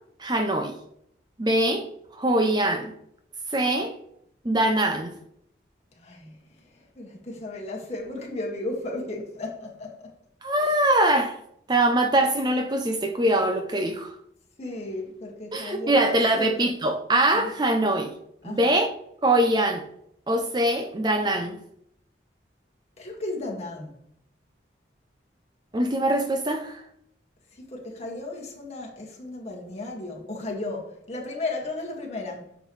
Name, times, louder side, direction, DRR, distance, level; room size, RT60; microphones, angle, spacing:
voice 1, 0.2-0.7 1.4-1.9 2.1-2.9 3.5-3.9 4.4-5.1 10.4-11.3 11.7-14.1 15.5-18.1 18.4-18.9 19.2-19.8 20.3-21.6 25.7-26.8, right 1 dB, 25° right, 0.6 m, -23 dB
voice 2, 6.0-6.3 6.8-10.1 10.6-10.7 14.6-16.6 17.3-17.5 18.4-18.8 23.0-23.9 27.6-32.5, left 2 dB, 35° left, 2.1 m, -35 dB
9.9 x 7.2 x 3.3 m
head